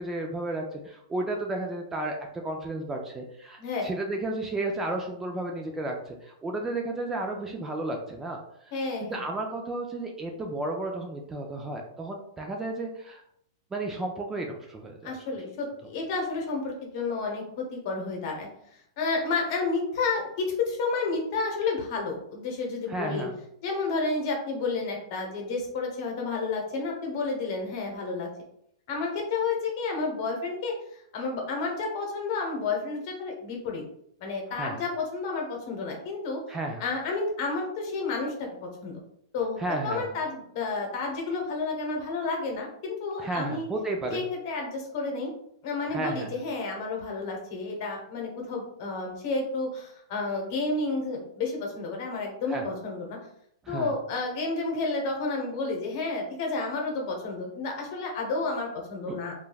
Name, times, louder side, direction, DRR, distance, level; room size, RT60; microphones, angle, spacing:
voice 1, 0.0-2.2 2.4-8.4 9.0-13.2 13.7-15.2 22.9-23.3 34.5-34.8 36.5-36.8 39.6-40.1 43.2-44.3 45.9-46.4 52.5-52.6 53.6-53.9 59.1-59.2, right 2 dB, 15° right, 2 dB, 0.3 m, -33 dB
voice 2, 3.6-3.9 8.7-9.2 15.0-18.5 19.0-23.3 23.6-28.3 28.9-30.7 31.1-33.8 34.2-36.4 36.8-38.9 39.3-43.7 44.1-45.3 45.6-53.2 53.7-59.3, left 3 dB, 50° left, 1 dB, 0.9 m, -31 dB
3.1 x 2.3 x 2.3 m, 0.71 s
hypercardioid pair, 135°, 2 cm